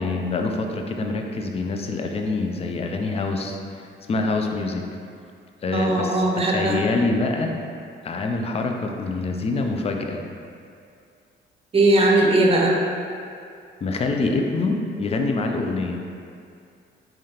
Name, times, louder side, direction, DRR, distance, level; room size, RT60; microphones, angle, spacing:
voice 1, 0.0-4.8 5.6-7.5 8.0-10.2 13.8-16.1, left 3 dB, 30° left, 3 dB, 0.4 m, -25 dB
voice 2, 5.7-6.8 11.7-12.7, right 2 dB, 30° right, -2 dB, 0.7 m, -19 dB
3.7 x 3.5 x 2.8 m, 2.3 s
cardioid pair, 90°, 20 cm